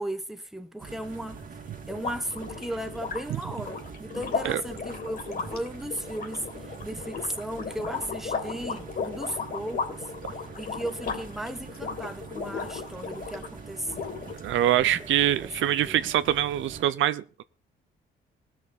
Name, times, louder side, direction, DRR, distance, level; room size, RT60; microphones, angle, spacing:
voice 1, 0.0-1.5 1.9-10.1 10.6-14.2 14.8-15.5 15.9-16.1, right 1 dB, ahead, 1.3 m, -36 dB
sound 1, 0.8-16.8, right 5 dB, 45° right, 2.2 m, -44 dB
sound 2, 1.9-13.5 13.9-14.7, left 5 dB, 50° left, 3.1 m, -35 dB
voice 2, 14.4-17.4, right 12 dB, 80° right, 0.7 m, -24 dB
18.0 x 6.4 x 5.2 m
cardioid pair, 90°, 20 cm